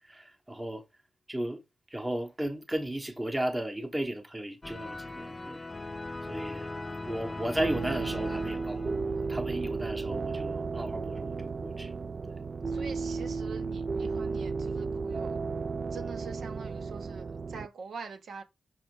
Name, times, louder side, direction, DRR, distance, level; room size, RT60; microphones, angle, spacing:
voice 1, 0.1-0.8 1.3-1.6 1.9-5.6 6.3-6.7 7.0-11.4 11.6-11.9 12.3-12.4, right 1 dB, 10° right, 1.2 m, -35 dB
Epic song, 4.6-9.5, left 2 dB, 20° left, 0.6 m, -39 dB
sound 1, 7.6-17.7, right 4 dB, 40° right, 0.4 m, -34 dB
voice 2, 12.7-15.4 15.9-18.4, right 5 dB, 75° right, 1.3 m, -44 dB
6.2 x 3.4 x 4.8 m
wide cardioid pair, 115°, 0 cm